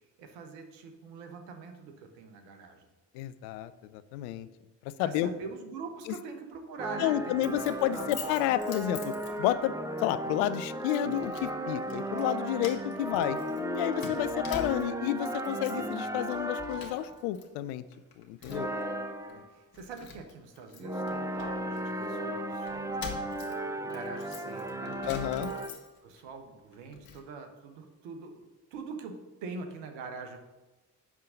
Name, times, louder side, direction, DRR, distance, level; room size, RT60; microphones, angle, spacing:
voice 1, 0.2-2.9 5.0-7.6 7.8-8.1 12.9-13.1 14.2-14.5 18.4-18.9 19.2-25.0 25.3-25.7 26.0-29.1 29.4-30.4, right 4 dB, 70° right, 6 dB, 1.3 m, -44 dB
voice 2, 3.1-4.5 5.0-5.3 7.0-9.1 9.4-13.4 13.7-17.8 18.3-18.7 25.1-25.5, left 12 dB, 70° left, 14 dB, 0.6 m, -30 dB
sound 1, 6.8-17.2 18.5-19.5 20.8-25.7, right 1 dB, 5° right, 0.8 m, -35 dB
Keys jangling, 7.4-9.7 10.1-10.3 10.9-11.5 11.8-12.3 12.6-15.1 15.4-15.9 16.2-17.4 17.7-18.8 19.3-19.4 19.7-22.1 22.7-26.2 26.6-27.2, left 6 dB, 50° left, 1.6 m, -46 dB
11.0 x 3.7 x 6.6 m, 1.1 s
figure-of-eight pair, 40°, 47 cm